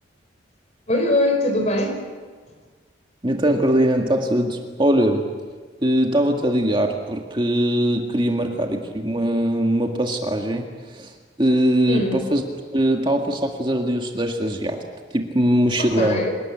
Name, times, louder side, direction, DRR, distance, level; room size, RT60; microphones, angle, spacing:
voice 1, 0.9-2.0 8.4-8.5 11.9-12.2 15.8-16.3, left 1 dB, 35° left, 5 dB, 4.9 m, -22 dB
voice 2, 3.2-5.3 5.8-11.1 11.4-12.4 12.7-14.8 15.1-16.2, right 1 dB, 25° right, 2 dB, 1.9 m, -21 dB
27.0 x 19.0 x 8.8 m, 1.4 s
head